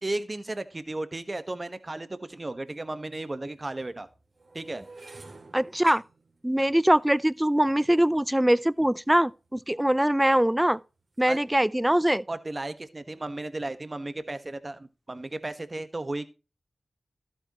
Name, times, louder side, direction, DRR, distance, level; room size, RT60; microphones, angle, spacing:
voice 1, 0.0-4.1 4.5-4.8 11.3-11.4 12.3-16.3, right 2 dB, 40° right, 1.4 m, -34 dB
sound 1, 2.7-2.8 3.5-9.7 10.4-10.7 11.0-11.4, right 3 dB, 60° right, 2.9 m, -52 dB
voice 2, 5.5-6.0 6.4-10.8 11.2-12.2, right 1 dB, 10° right, 0.5 m, -22 dB
12.5 x 9.0 x 3.1 m
cardioid pair, 40°, 0 cm